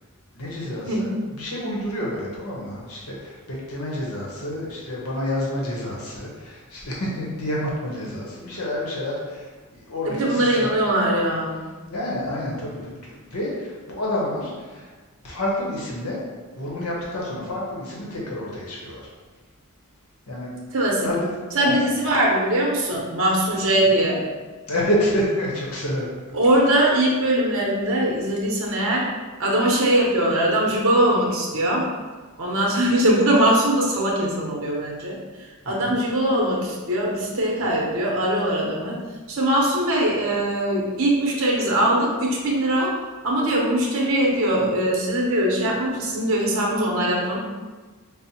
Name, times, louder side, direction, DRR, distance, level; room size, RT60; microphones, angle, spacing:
voice 1, 0.3-10.7 11.9-14.9 15.2-16.2 16.6-19.1 20.3-20.5 21.0-21.9 24.7-26.1 35.7-36.0, left 1 dB, 85° left, -4 dB, 0.9 m, -29 dB
voice 2, 10.0-11.6 20.7-21.1 21.5-24.2 26.3-29.1 29.4-31.8 32.4-35.2 35.7-39.0 39.3-42.9 43.2-47.4, right 1 dB, 65° right, -2 dB, 0.7 m, -21 dB
5.2 x 2.0 x 2.8 m, 1.3 s
head